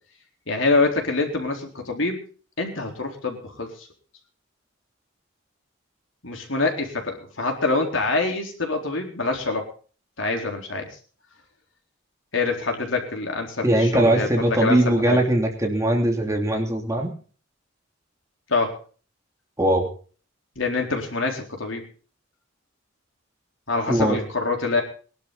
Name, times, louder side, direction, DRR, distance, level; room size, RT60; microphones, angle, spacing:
voice 1, 0.5-2.2 2.6-3.9 6.2-9.7 10.2-10.9 12.3-15.2 18.5-18.8 20.6-21.8 23.7-24.8, left 3 dB, 70° left, 2 dB, 4.1 m, -25 dB
voice 2, 13.6-17.1 19.6-19.9 23.9-24.2, right 1 dB, 15° right, 1 dB, 2.9 m, -20 dB
21.5 x 12.0 x 4.1 m, 0.41 s
head